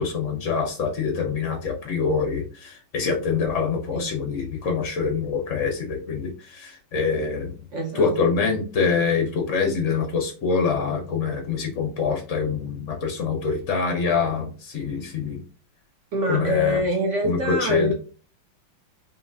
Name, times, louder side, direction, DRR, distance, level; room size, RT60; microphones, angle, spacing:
voice 1, 0.0-7.5 7.9-15.4 16.3-16.8 17.2-17.9, left 5 dB, 65° left, 2 dB, 0.7 m, -25 dB
voice 2, 7.7-8.5 16.1-17.9, equal, 65° right, 1 dB, 0.7 m, -25 dB
5.5 x 2.6 x 2.6 m, 0.38 s
omnidirectional pair, 2.4 m